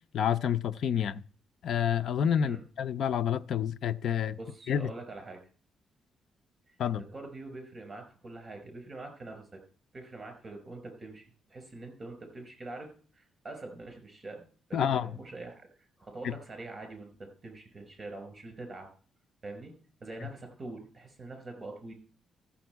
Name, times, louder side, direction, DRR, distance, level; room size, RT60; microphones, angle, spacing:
voice 1, 0.1-1.2 1.6-4.4 4.7-4.9 6.8-7.0 14.7-15.1 16.2-16.3 20.2-20.3, left 8 dB, 65° left, 0.5 m, -28 dB
voice 2, 4.4-5.4 6.7-9.6 9.9-18.9 19.4-19.7 20.0-21.9, right 2 dB, 25° right, 5.1 m, -44 dB
14.5 x 7.2 x 4.5 m
cardioid pair, 120°, 0 cm